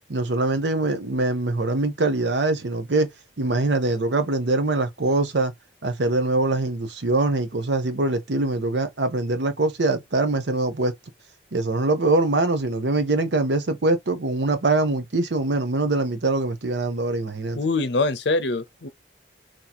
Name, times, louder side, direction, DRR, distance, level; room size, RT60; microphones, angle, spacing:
voice 1, 0.1-3.1 3.4-5.5 5.8-10.9 11.5-17.6, right 2 dB, 70° right, 0.8 m, -23 dB
voice 2, 17.6-18.9, left 3 dB, 70° left, 0.7 m, -24 dB
3.0 x 2.9 x 4.0 m
head